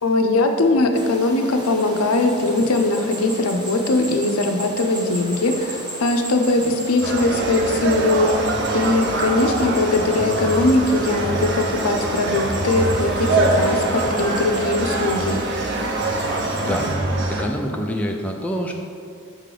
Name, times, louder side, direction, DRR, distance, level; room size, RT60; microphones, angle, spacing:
voice 1, 0.0-15.4, left 2 dB, 80° left, 5 dB, 0.6 m, -20 dB
sound 1, 0.9-16.9, right 1 dB, 20° right, 0.8 m, -36 dB
sound 2, 7.0-17.4, right 2 dB, 55° right, 0.7 m, -23 dB
voice 2, 16.2-17.0 17.3-18.7, equal, 5° left, 1 dB, 0.3 m, -26 dB
6.5 x 3.8 x 4.9 m, 2.3 s
head